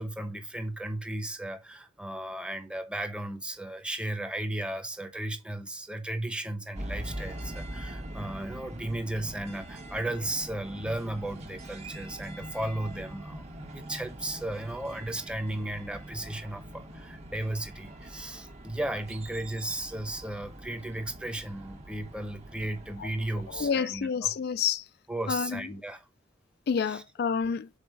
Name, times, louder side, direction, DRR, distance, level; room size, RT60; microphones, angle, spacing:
voice 1, 0.0-24.3 25.1-26.0 26.8-27.0, right 1 dB, 5° right, 0.9 m, -35 dB
sound 1, 6.7-23.7, right 1 dB, 35° right, 1.4 m, -43 dB
voice 2, 23.5-24.8 25.3-25.6 26.7-27.7, left 6 dB, 50° left, 0.3 m, -28 dB
6.5 x 4.2 x 5.3 m
head